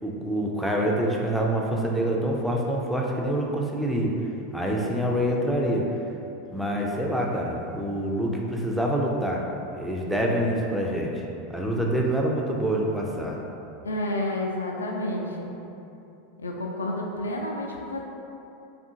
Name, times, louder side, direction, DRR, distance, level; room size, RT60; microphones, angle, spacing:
voice 1, 0.0-4.1 4.5-5.9 6.5-9.4 9.7-11.2 11.5-13.4, right 1 dB, ahead, -2 dB, 0.4 m, -26 dB
voice 2, 13.8-15.5 16.4-18.0, left 1 dB, 85° left, 0 dB, 0.3 m, -30 dB
3.5 x 2.4 x 2.7 m, 2.8 s
figure-of-eight pair, 85°, 0 cm